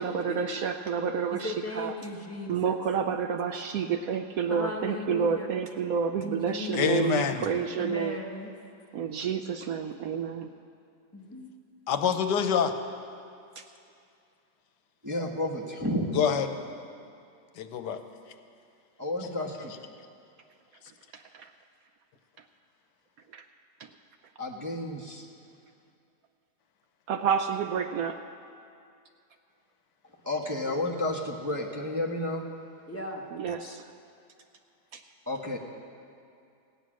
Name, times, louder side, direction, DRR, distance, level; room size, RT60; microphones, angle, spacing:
voice 1, 0.0-1.9 2.5-8.2 8.9-10.5 21.1-21.5 23.3-23.4 23.8-23.9 27.1-28.2 33.3-33.9 34.9-35.0, right 6 dB, 70° right, 7 dB, 0.9 m, -29 dB
voice 2, 1.3-2.8 4.5-5.5 6.2-7.4 7.8-8.5 11.1-11.5 32.9-33.3, left 2 dB, 10° left, -1 dB, 1.1 m, -37 dB
voice 3, 6.7-7.5 11.9-12.7 16.1-16.5 17.6-18.0 33.6-33.7, left 7 dB, 85° left, 8 dB, 1.4 m, -26 dB
voice 4, 15.0-16.2 19.0-19.7 24.4-25.2 30.2-32.4 35.3-35.6, left 1 dB, 15° right, -2 dB, 0.8 m, -31 dB
16.5 x 9.1 x 6.2 m, 2.5 s
omnidirectional pair, 1.8 m